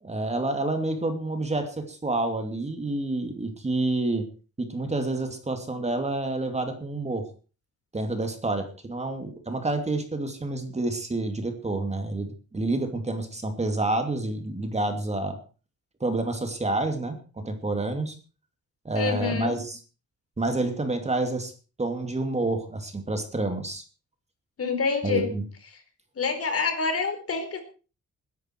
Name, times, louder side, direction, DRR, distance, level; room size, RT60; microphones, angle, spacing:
voice 1, 0.0-4.2 4.6-7.3 7.9-15.4 16.0-18.1 18.8-19.8 20.4-21.5 21.8-23.8 25.0-25.4, right 2 dB, 20° right, 6 dB, 2.7 m, -28 dB
voice 2, 18.9-19.6 24.6-25.3 26.2-27.6, left 4 dB, 50° left, 7 dB, 4.6 m, -27 dB
20.5 x 11.0 x 4.6 m, 0.36 s
cardioid pair, 105°, 29 cm